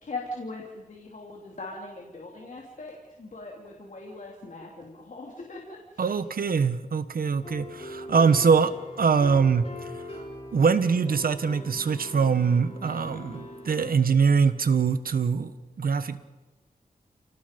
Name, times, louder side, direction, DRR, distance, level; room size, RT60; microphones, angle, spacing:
voice 1, 0.0-2.9 3.2-5.8, left 2 dB, 60° left, -1 dB, 3.0 m, -40 dB
voice 2, 6.0-8.7 9.0-10.2 10.5-15.5 15.8-16.2, right 5 dB, 75° right, 12 dB, 1.3 m, -23 dB
sound 1, 7.4-13.9, left 2 dB, 40° left, 5.1 m, -42 dB
29.5 x 18.5 x 5.3 m, 1.2 s
wide cardioid pair, 120°, 15 cm